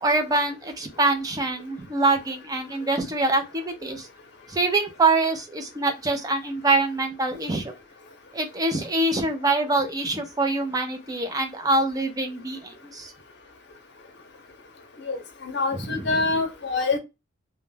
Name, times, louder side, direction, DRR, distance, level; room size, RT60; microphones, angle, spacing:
voice 1, 0.0-4.1 4.5-7.7 8.3-13.1 16.0-16.1, right 2 dB, 15° right, 0.4 m, -24 dB
voice 2, 15.1-17.0, left 3 dB, 55° left, 0.6 m, -26 dB
2.2 x 2.2 x 3.1 m
head